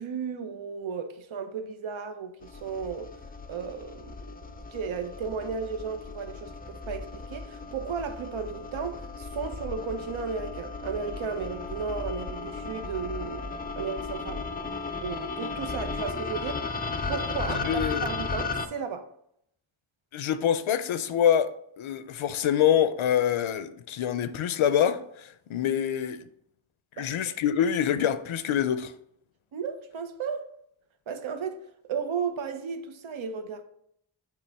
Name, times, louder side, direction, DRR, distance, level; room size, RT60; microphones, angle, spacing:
voice 1, 0.0-3.1 3.5-4.2 4.7-14.5 15.0-16.7 17.1-19.1 27.0-27.4 29.5-30.5 31.1-31.6 31.9-33.6, right 5 dB, 75° right, 0.8 m, -34 dB
sound 1, 2.4-18.7, left 4 dB, 20° left, 0.3 m, -35 dB
voice 2, 17.5-18.1 20.1-26.3 27.0-28.9, left 9 dB, 80° left, 0.6 m, -26 dB
8.1 x 3.4 x 3.4 m
wide cardioid pair, 135°, 48 cm